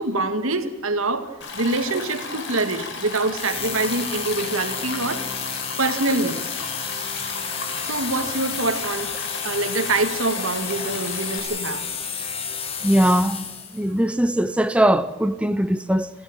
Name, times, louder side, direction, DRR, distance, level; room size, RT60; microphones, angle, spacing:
voice 1, 0.0-5.2 5.8-6.4 7.8-11.9, right 2 dB, 85° right, 2.1 m, -25 dB
Stream, 1.4-11.4, left 4 dB, 60° left, 4.4 m, -34 dB
sound 1, 3.4-13.9, left 6 dB, 30° left, 2.0 m, -31 dB
voice 2, 12.8-13.4 13.7-16.1, right 1 dB, 5° right, 0.6 m, -20 dB
29.5 x 11.5 x 8.9 m
head